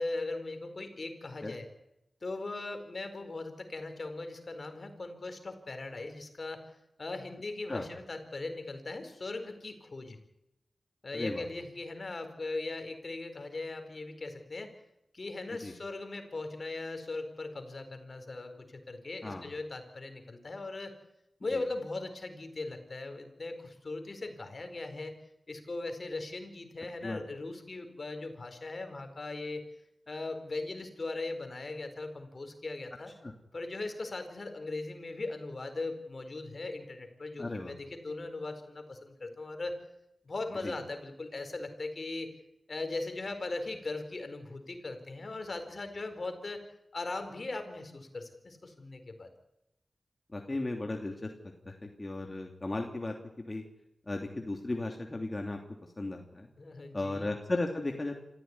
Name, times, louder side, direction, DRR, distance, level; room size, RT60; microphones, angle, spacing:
voice 1, 0.0-1.7 2.2-6.6 7.0-10.2 11.0-14.7 15.1-20.9 21.4-25.1 25.5-29.6 30.1-33.1 33.5-39.8 40.2-42.3 42.7-46.6 46.9-49.3 56.6-57.3, left 2 dB, 60° left, 8 dB, 4.5 m, -39 dB
voice 2, 11.1-11.4 15.6-15.7 19.2-19.4 21.5-21.6 27.0-27.2 33.2-33.3 37.4-37.7 40.6-40.7 50.3-51.3 51.6-53.1 53.5-53.6 54.1-55.6 56.0-56.5 56.9-58.2, left 2 dB, 40° left, 2 dB, 3.0 m, -35 dB
27.0 x 15.0 x 9.7 m, 0.86 s
cardioid pair, 45°, 0 cm